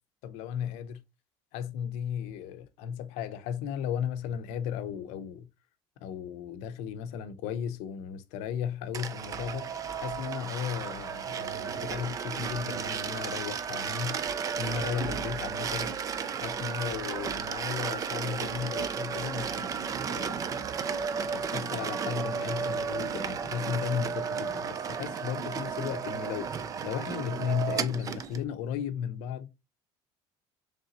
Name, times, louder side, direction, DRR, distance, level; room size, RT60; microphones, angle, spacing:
voice 1, 0.2-1.0 1.5-5.5 6.0-9.7 10.0-14.2 14.6-15.9 16.4-20.4 21.2-29.5, left 8 dB, 85° left, 0.6 m, -35 dB
sound 1, 8.9-28.4, right 6 dB, 30° right, 0.4 m, -33 dB
3.9 x 3.3 x 2.8 m
cardioid pair, 135°, 11 cm